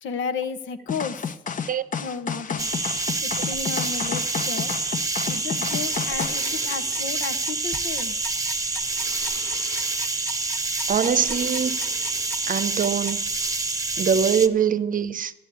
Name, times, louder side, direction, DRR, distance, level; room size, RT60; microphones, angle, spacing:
voice 1, 0.0-1.3 2.0-2.7 3.2-4.7 5.3-8.2, left 6 dB, 75° left, 1.0 m, -33 dB
sound 1, 0.9-6.4, left 6 dB, 40° left, 0.9 m, -31 dB
sound 2, 2.6-14.5, right 3 dB, 15° right, 0.9 m, -27 dB
sound 3, 5.7-13.1, left 1 dB, 10° left, 1.3 m, -38 dB
voice 2, 10.9-11.8 12.5-13.3 14.0-15.3, right 7 dB, 45° right, 0.7 m, -23 dB
12.0 x 8.5 x 9.5 m
cardioid pair, 90°, 20 cm